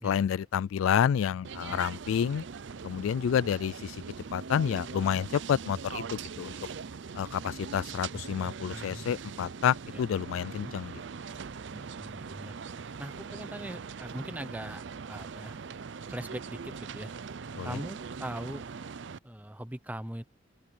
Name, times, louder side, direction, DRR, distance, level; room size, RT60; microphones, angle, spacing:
voice 1, 0.0-2.4 2.8-4.0 4.3-6.5 7.1-10.9 17.6-17.8, left 8 dB, 80° left, 0.3 m, -29 dB
sound 1, 1.4-19.2, right 5 dB, 60° right, 0.5 m, -41 dB
voice 2, 8.4-9.1 9.9-10.0 10.6-10.7 11.7-12.5 13.0-15.6 16.1-17.1 17.6-18.6 19.2-20.3, right 1 dB, 10° right, 0.9 m, -41 dB
open air
head